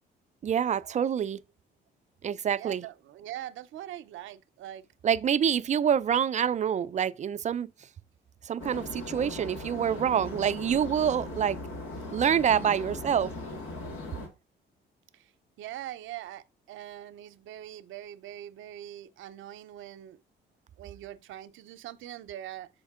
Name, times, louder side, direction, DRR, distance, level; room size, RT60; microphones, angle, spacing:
voice 1, 0.4-1.4 2.2-2.8 5.0-7.7 8.4-11.6 12.1-13.3, right 8 dB, 35° right, 0.4 m, -26 dB
voice 2, 2.6-4.9 15.1-20.2 20.8-22.7, right 12 dB, 80° right, 0.6 m, -42 dB
sound 1, 8.6-14.3, left 2 dB, 90° left, 1.7 m, -39 dB
6.4 x 5.0 x 3.5 m
cardioid pair, 90°, 20 cm